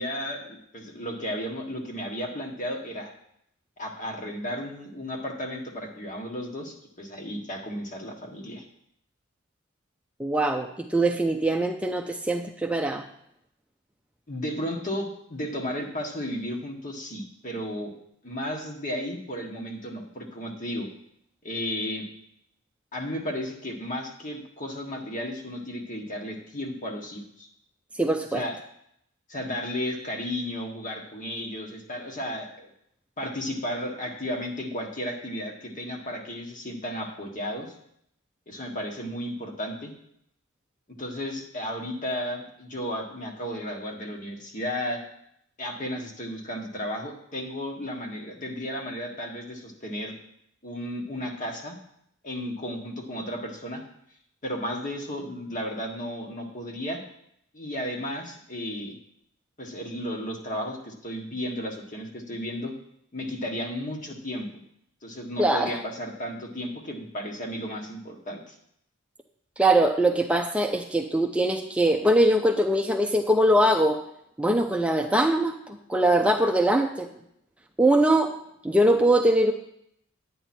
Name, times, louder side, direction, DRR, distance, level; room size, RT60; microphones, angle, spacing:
voice 1, 0.0-3.1 3.8-8.7 14.3-17.9 18.2-20.9 21.4-22.1 22.9-27.5 28.3-28.6 29.3-32.7 33.2-37.8 38.5-39.9 41.0-45.1 45.6-50.2 50.6-51.8 52.2-53.8 54.4-57.0 57.5-59.0 59.6-62.7 63.1-64.5 65.0-68.6, equal, 40° left, 2 dB, 1.7 m, -34 dB
voice 2, 10.2-13.0 28.0-28.4 65.4-65.8 69.6-74.0 74.4-77.1 77.8-78.3 78.6-79.5, right 1 dB, 5° right, 2 dB, 0.6 m, -22 dB
11.0 x 9.1 x 4.4 m, 0.73 s
head